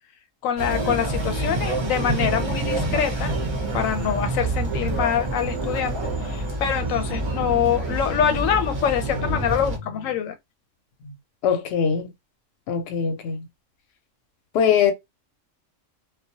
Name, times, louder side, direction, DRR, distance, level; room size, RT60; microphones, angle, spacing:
voice 1, 0.4-3.3 3.7-10.4 11.0-11.1, left 8 dB, 85° left, 1.0 m, -25 dB
sound 1, 0.6-9.8, right 2 dB, 40° right, 0.4 m, -27 dB
voice 2, 11.4-12.1 12.7-13.5 14.5-14.9, left 7 dB, 65° left, 0.8 m, -21 dB
2.2 x 2.1 x 2.6 m
omnidirectional pair, 1.3 m